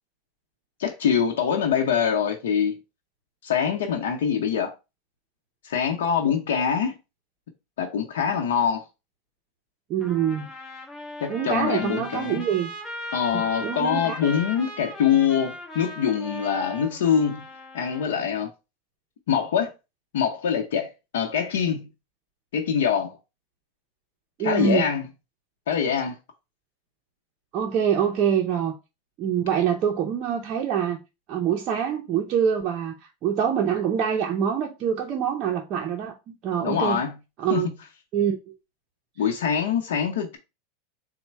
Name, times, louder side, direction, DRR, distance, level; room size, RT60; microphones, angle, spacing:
voice 1, 0.8-2.8 3.4-4.7 5.6-6.9 7.8-8.8 11.2-12.4 13.1-17.5 17.7-18.5 19.3-19.7 20.1-21.9 22.5-23.2 24.4-25.0 25.7-26.2 36.6-37.1 37.5-37.7 39.2-40.4, left 7 dB, 85° left, 0.7 m, -24 dB
voice 2, 9.9-10.5 11.3-12.7 13.3-14.2 24.4-24.9 27.5-28.7 29.2-31.0 31.3-32.9 33.2-37.0 37.4-37.7 38.1-38.4 39.2-39.3, right 8 dB, 40° right, 0.6 m, -25 dB
Trumpet, 10.0-18.2, left 1 dB, 15° left, 1.1 m, -38 dB
4.1 x 2.1 x 4.4 m
supercardioid pair, 130°, 0 cm